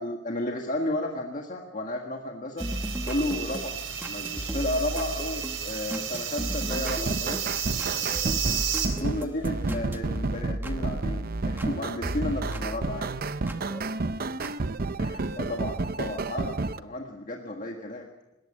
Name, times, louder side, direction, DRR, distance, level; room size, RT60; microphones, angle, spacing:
voice 1, 0.0-2.7 3.0-3.8 4.0-7.4 9.0-13.2 15.0-18.1, left 1 dB, 40° left, 2 dB, 1.7 m, -33 dB
sound 1, 2.6-11.7 12.0-13.6 14.4-14.5, equal, 10° right, 1.1 m, -36 dB
sound 2, 2.6-8.9, right 8 dB, 70° right, 3.7 m, -32 dB
sound 3, 6.7-16.8, right 3 dB, 45° right, 0.7 m, -31 dB
voice 2, 7.7-8.9 13.1-14.3, equal, 15° left, 3 dB, 5.8 m, -49 dB
21.0 x 18.0 x 7.4 m, 1.0 s
head